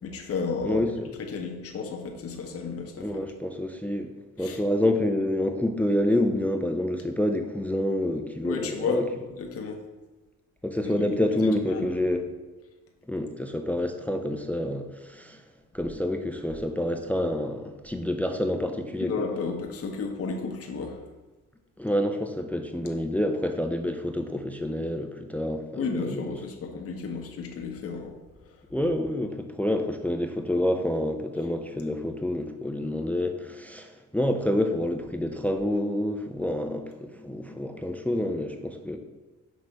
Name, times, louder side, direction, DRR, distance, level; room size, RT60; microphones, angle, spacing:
voice 1, 0.0-3.2 4.4-4.6 8.4-9.1 9.3-9.8 10.8-12.2 19.0-21.0 25.8-28.2 28.4-28.5, left 5 dB, 50° left, 2 dB, 0.9 m, -33 dB
voice 2, 0.6-1.1 3.0-4.1 4.4-9.0 10.6-12.2 13.1-15.4 15.7-19.1 21.8-26.3 28.7-39.0, left 1 dB, 5° left, 5 dB, 0.5 m, -28 dB
6.2 x 3.2 x 5.2 m, 1.2 s
cardioid pair, 90°, 30 cm